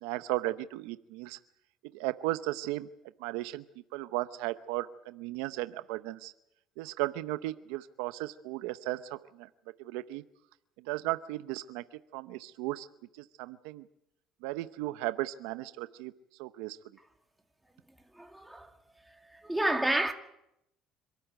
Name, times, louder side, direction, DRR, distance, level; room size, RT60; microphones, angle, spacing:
voice 1, 0.0-1.4 1.9-2.9 3.2-3.6 3.9-6.3 6.8-9.5 9.8-10.2 10.9-11.8 12.1-12.9 13.4-13.8 14.4-16.1 16.4-16.8, right 17 dB, 85° right, 0.8 m, -35 dB
voice 2, 18.2-18.7 19.4-20.1, right 1 dB, 5° right, 2.2 m, -29 dB
26.5 x 13.0 x 9.2 m
supercardioid pair, 105°, 0 cm